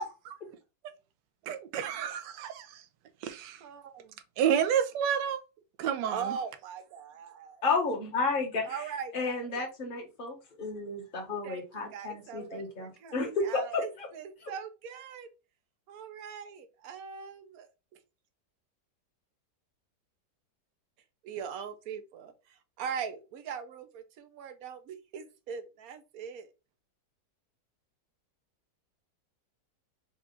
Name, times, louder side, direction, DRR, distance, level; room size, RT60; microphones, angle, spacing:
voice 1, 1.5-2.7 3.2-3.6 4.4-5.4 5.8-6.4, right 9 dB, 85° right, 1.3 m, -29 dB
voice 2, 3.6-4.1 6.0-7.6 8.6-9.4 11.4-11.6 11.9-15.3 15.9-17.7 21.2-26.5, right 7 dB, 65° right, 1.0 m, -41 dB
voice 3, 7.6-8.9 9.1-14.1 14.4-14.5, left 3 dB, 35° left, 1.1 m, -32 dB
4.2 x 2.3 x 3.7 m
omnidirectional pair, 1.9 m